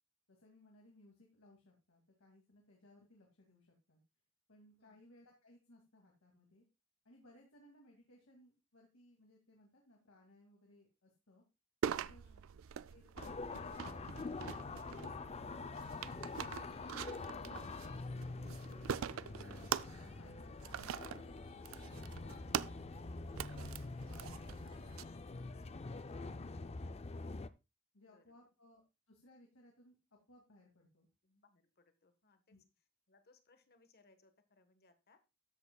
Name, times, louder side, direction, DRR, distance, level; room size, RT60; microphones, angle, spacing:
voice 1, 0.3-4.0 4.5-6.6 7.0-11.4 11.9-12.2 12.9-17.9 18.5-21.5 21.8-22.8 23.4-25.7 26.1-27.0 27.9-29.9 30.3-31.1 32.5-32.6, left 1 dB, 85° left, 0 dB, 2.3 m, -64 dB
sound 1, 11.8-25.0, right 8 dB, 75° right, 0.4 m, -44 dB
sound 2, 13.2-27.5, left 3 dB, 30° left, 0.4 m, -46 dB
voice 2, 28.0-28.4 31.2-32.6 33.1-35.2, left 3 dB, 50° left, 9 dB, 1.3 m, -70 dB
13.0 x 8.0 x 2.3 m, 0.26 s
head